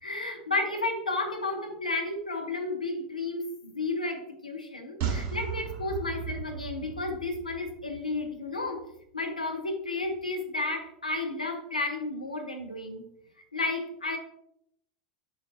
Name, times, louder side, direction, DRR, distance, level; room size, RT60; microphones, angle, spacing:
voice 1, 0.0-8.8 9.1-13.0 13.5-14.2, left 2 dB, 85° left, 3 dB, 1.0 m, -32 dB
sound 1, 5.0-8.4 8.7-8.8, right 7 dB, 40° right, 1.6 m, -36 dB
6.9 x 6.8 x 2.6 m, 0.78 s
figure-of-eight pair, 85°, 4 cm